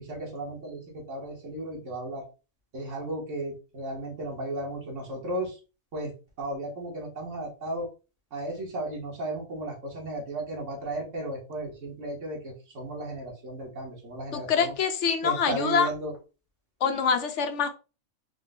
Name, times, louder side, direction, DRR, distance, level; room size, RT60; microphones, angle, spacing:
voice 1, 0.0-2.2 2.7-5.5 5.9-6.1 6.4-7.9 8.3-14.7 15.2-16.1, right 1 dB, 55° right, -1 dB, 1.8 m, -35 dB
voice 2, 14.3-15.9 16.8-17.7, left 6 dB, 60° left, 7 dB, 0.9 m, -25 dB
4.8 x 2.2 x 3.7 m, 0.32 s
omnidirectional pair, 1.5 m